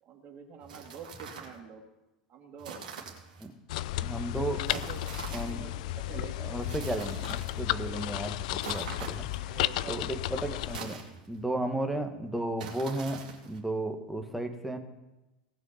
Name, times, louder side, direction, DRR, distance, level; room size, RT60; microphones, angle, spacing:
voice 1, 0.0-1.8 2.3-2.8 4.3-5.0 5.3-6.6 9.3-10.1, right 6 dB, 40° right, 1 dB, 2.9 m, -46 dB
sound 1, 0.6-1.6 2.6-3.5 4.7-5.6 6.6-7.6 8.6-9.5 10.6-11.4 12.6-13.6, right 6 dB, 70° right, 2.5 m, -44 dB
sound 2, 3.7-10.8, left 15 dB, 60° left, 0.4 m, -33 dB
voice 2, 4.0-4.6 5.3-5.6 6.5-9.2 9.9-10.0 10.4-11.0 11.3-13.2 13.5-14.8, right 1 dB, 5° right, 5 dB, 1.7 m, -34 dB
18.0 x 6.2 x 5.8 m, 1.0 s
figure-of-eight pair, 80°, 5 cm